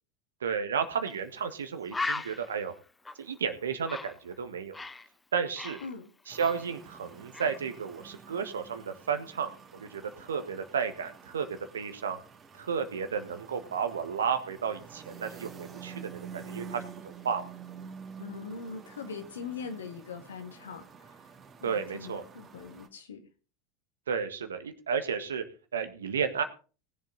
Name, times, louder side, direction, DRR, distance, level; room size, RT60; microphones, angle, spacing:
voice 1, 0.4-2.7 3.2-4.7 5.3-5.8 6.3-9.5 9.8-11.5 11.7-12.2 12.6-17.4 21.6-22.2 24.1-25.4 25.7-26.4, right 6 dB, 75° right, 8 dB, 1.5 m, -32 dB
Bird, 1.0-1.2 1.5-1.6 1.9-5.1 5.4-7.0 7.3-7.6, left 3 dB, 15° left, 0.9 m, -38 dB
sound 1, 6.3-22.9, right 6 dB, 25° right, 2.3 m, -49 dB
voice 2, 18.2-20.8 21.6-23.2, left 5 dB, 75° left, 6 dB, 2.2 m, -41 dB
19.5 x 7.4 x 4.1 m, 0.36 s
figure-of-eight pair, 80°, 0 cm